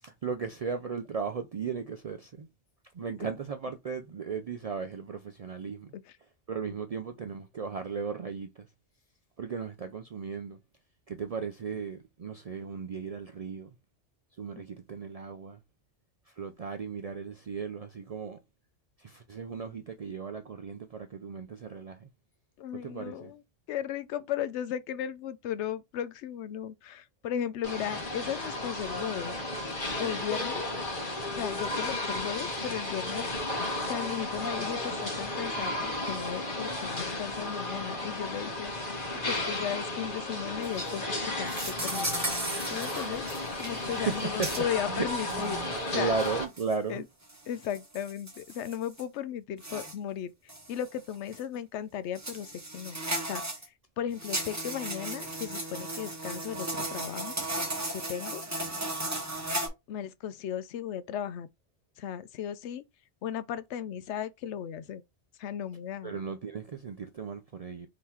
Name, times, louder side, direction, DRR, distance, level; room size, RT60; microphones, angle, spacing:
voice 1, 0.0-2.5 2.9-8.7 9.4-10.6 11.1-13.7 14.4-15.6 16.3-18.4 19.0-22.1 22.7-23.3 44.0-47.0 66.0-67.9, right 5 dB, 60° right, 0.4 m, -36 dB
voice 2, 22.6-23.4 23.7-29.3 30.0-30.7 31.3-33.3 33.9-38.7 39.2-42.3 42.7-46.1 46.9-47.0 47.5-50.3 50.7-53.0 53.3-53.4 54.0-57.4 57.9-58.4 59.9-61.5 62.0-62.8 63.2-65.0 65.4-66.2, left 9 dB, 80° left, 0.9 m, -36 dB
sound 1, 27.6-46.4, left 1 dB, 50° left, 1.5 m, -34 dB
sound 2, 40.6-40.9 41.5-43.7 44.0-44.2 44.4-44.6 45.3-45.4 46.2-46.8 47.3-49.0 49.6-49.9 50.5-50.9 51.3-51.4 52.2-53.7 54.2-59.7, right 1 dB, 15° right, 0.9 m, -35 dB
3.8 x 3.0 x 4.2 m
omnidirectional pair, 1.2 m